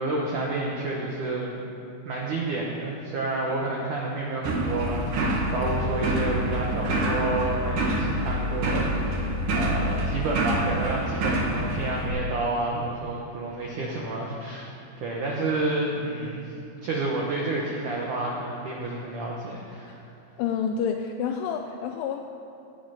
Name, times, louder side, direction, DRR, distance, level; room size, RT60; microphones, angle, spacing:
voice 1, 0.0-1.6 2.1-9.2 9.5-14.7 15.0-16.4 16.8-20.0, right 2 dB, 80° right, -2 dB, 1.8 m, -30 dB
sound 1, 4.4-12.1, right 1 dB, 55° right, 2.5 m, -26 dB
voice 2, 20.4-22.2, left 7 dB, 85° left, 3 dB, 3.0 m, -28 dB
17.5 x 8.8 x 5.8 m, 2.7 s
omnidirectional pair, 5.5 m